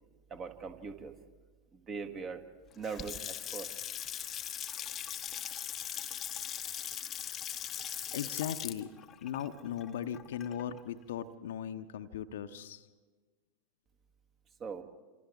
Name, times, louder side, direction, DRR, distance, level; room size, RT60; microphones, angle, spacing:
voice 1, 0.3-1.1 1.7-2.4 2.7-3.7 14.6-14.8, right 5 dB, 25° right, 8 dB, 1.5 m, -40 dB
Water tap faucet / Sink (filling or washing) / Splash splatter, 2.7-10.8, left 10 dB, 25° left, 0.8 m, -40 dB
voice 2, 8.1-8.9 9.2-12.9, left 9 dB, 60° left, 9 dB, 0.9 m, -38 dB
28.0 x 27.0 x 3.5 m, 1.4 s
figure-of-eight pair, 90°, 0 cm